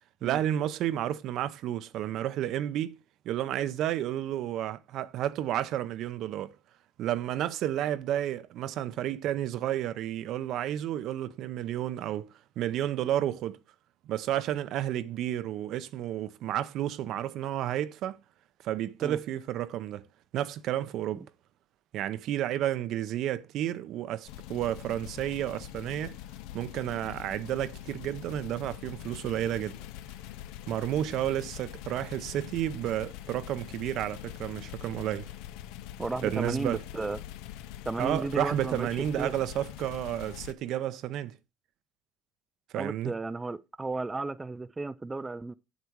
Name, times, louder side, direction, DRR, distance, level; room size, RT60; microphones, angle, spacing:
voice 1, 0.2-3.0 3.2-6.6 7.0-12.3 12.6-13.6 14.1-18.2 18.6-20.1 20.3-21.3 21.9-26.2 26.5-29.8 30.7-35.3 36.2-36.8 38.0-41.4 42.7-43.1, right 12 dB, 55° right, 0.7 m, -31 dB
sound 1, 24.3-40.5, left 12 dB, 80° left, 0.8 m, -43 dB
voice 2, 36.0-37.2 37.9-38.9 39.2-39.3 42.8-45.5, right 3 dB, 15° right, 0.4 m, -34 dB
8.5 x 8.2 x 4.6 m
cardioid pair, 140°, 0 cm